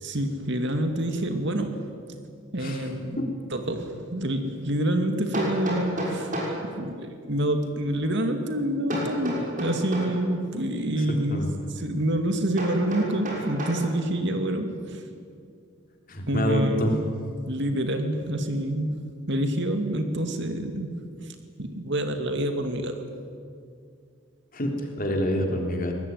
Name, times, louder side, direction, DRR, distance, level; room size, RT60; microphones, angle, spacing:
voice 1, 0.0-1.9 2.5-3.0 3.5-6.3 6.6-11.5 11.8-15.0 16.3-17.0 17.5-23.0, right 1 dB, 55° right, 6 dB, 2.3 m, -27 dB
voice 2, 2.6-2.9 3.2-3.3 11.0-11.5 16.1-16.9 24.5-25.9, equal, 40° left, 2 dB, 3.6 m, -27 dB
Hammer, 5.3-6.6 8.9-10.2 12.6-13.8, equal, 40° right, 6.5 m, -31 dB
23.0 x 20.0 x 9.4 m, 2.2 s
head